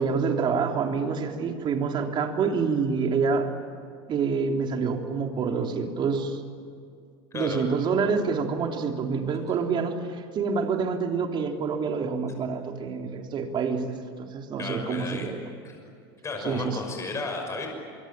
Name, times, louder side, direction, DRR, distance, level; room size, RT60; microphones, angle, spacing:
voice 1, 0.0-3.5 4.1-6.4 7.3-15.4 16.4-16.8, right 5 dB, 40° right, 3 dB, 3.5 m, -27 dB
voice 2, 7.3-7.6 14.6-15.3 15.6-15.7 16.2-17.7, left 3 dB, 25° left, 2 dB, 6.1 m, -33 dB
25.0 x 24.0 x 9.1 m, 2.4 s
supercardioid pair, 115°, 13 cm